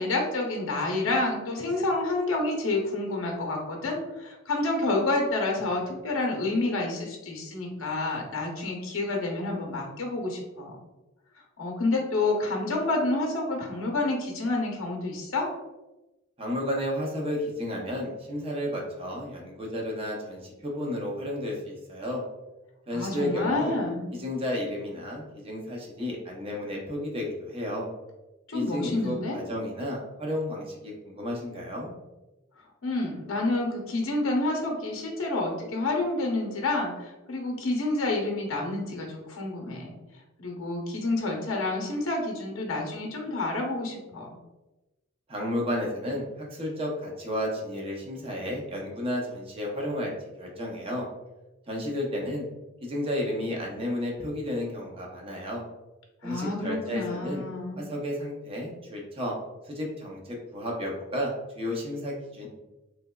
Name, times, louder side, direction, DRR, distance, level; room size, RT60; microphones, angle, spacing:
voice 1, 0.0-10.8 11.6-15.5 22.9-24.1 28.5-29.4 32.8-39.9 40.4-44.4 56.2-57.8, left 2 dB, 65° left, 1 dB, 0.7 m, -29 dB
voice 2, 16.4-22.2 22.9-23.7 24.1-27.9 28.5-31.9 45.3-50.1 50.4-51.1 51.7-52.5 52.8-55.6 56.2-57.4 57.7-59.3 59.6-61.3 61.6-62.5, left 1 dB, 25° right, -1 dB, 0.6 m, -32 dB
3.4 x 2.9 x 2.2 m, 1.0 s
head